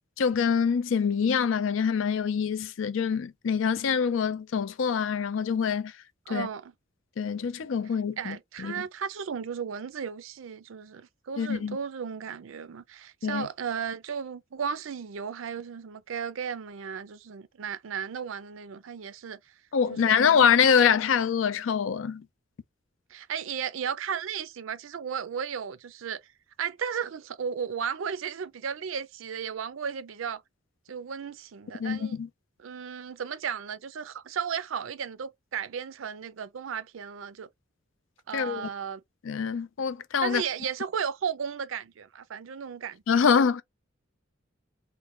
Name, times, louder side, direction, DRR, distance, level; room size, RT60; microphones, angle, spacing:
voice 1, 0.2-5.9 6.3-6.5 7.2-8.8 11.4-11.8 13.2-13.5 19.7-22.2 31.8-32.3 38.3-38.7 39.2-40.4 43.1-43.6, left 6 dB, 75° left, 0.4 m, -25 dB
voice 2, 6.3-6.7 8.2-19.4 19.9-20.3 23.1-26.2 26.6-30.4 30.9-32.2 32.6-37.5 38.3-39.0 40.2-43.2, right 7 dB, 80° right, 0.5 m, -35 dB
3.2 x 2.1 x 3.6 m
head